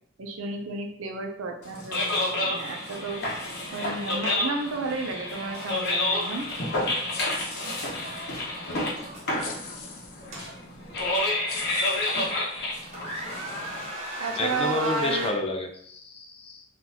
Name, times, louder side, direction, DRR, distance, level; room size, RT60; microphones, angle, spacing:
voice 1, 0.2-3.2 3.7-6.5 9.3-9.4 14.2-15.3, right 3 dB, 70° right, 3 dB, 0.6 m, -32 dB
sound 1, 1.6-13.9, left 2 dB, 55° left, 1.0 m, -30 dB
sound 2, 3.3-3.4 3.7-3.9 5.5-5.7 6.2-6.6 8.1-8.4 8.6-9.2 10.0-11.0 11.6-11.7 12.3-12.6 12.9-15.3, right 1 dB, 35° right, 1.0 m, -36 dB
sound 3, 7.1-8.2 9.4-10.3 11.0-11.1 11.5-12.9, left 5 dB, 85° left, 0.6 m, -42 dB
voice 2, 14.4-16.6, left 2 dB, 30° left, 3 dB, 0.4 m, -30 dB
3.8 x 2.5 x 2.8 m, 0.66 s
head